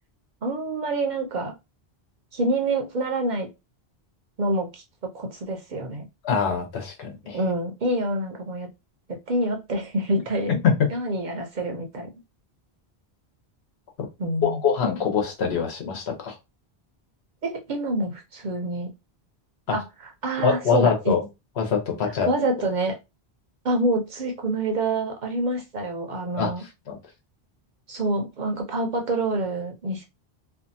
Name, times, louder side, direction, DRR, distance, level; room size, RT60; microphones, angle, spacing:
voice 1, 0.4-1.5 2.3-3.5 4.4-6.1 7.3-8.7 9.3-10.6 10.9-12.1 14.2-14.6 17.4-18.9 19.7-19.8 20.2-21.1 22.0-22.9 23.6-26.6 27.9-30.0, right 1 dB, 55° right, 3 dB, 0.6 m, -27 dB
voice 2, 6.2-7.4 10.5-10.7 14.0-14.1 14.4-16.4 19.7-19.8 20.4-21.2 21.6-22.3 26.4-26.5 26.9-27.0, left 6 dB, 80° left, 3 dB, 1.1 m, -24 dB
2.6 x 2.3 x 2.6 m, 0.24 s
omnidirectional pair, 1.1 m